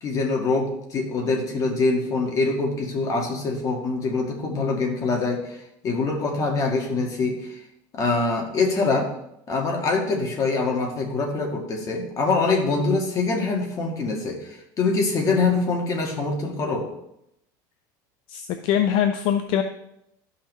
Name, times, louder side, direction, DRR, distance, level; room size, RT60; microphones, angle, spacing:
voice 1, 0.0-7.6 7.9-9.1 9.5-16.9, left 3 dB, 35° left, 1 dB, 1.9 m, -24 dB
voice 2, 18.3-19.6, left 9 dB, 60° left, 8 dB, 0.6 m, -22 dB
12.5 x 5.8 x 3.2 m, 0.81 s
supercardioid pair, 140°, 10 cm